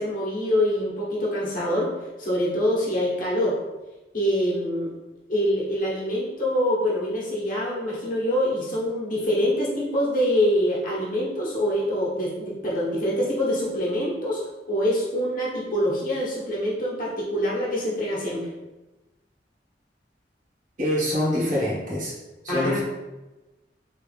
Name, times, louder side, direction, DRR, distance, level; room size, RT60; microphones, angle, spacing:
voice 1, 0.0-1.9 2.2-3.6 4.1-4.9 5.3-14.4 14.7-18.4 22.5-22.8, equal, 50° left, -6 dB, 1.0 m, -25 dB
voice 2, 20.8-22.1 22.4-22.8, left 1 dB, 50° right, -5 dB, 1.0 m, -25 dB
3.2 x 2.5 x 3.3 m, 1.1 s
head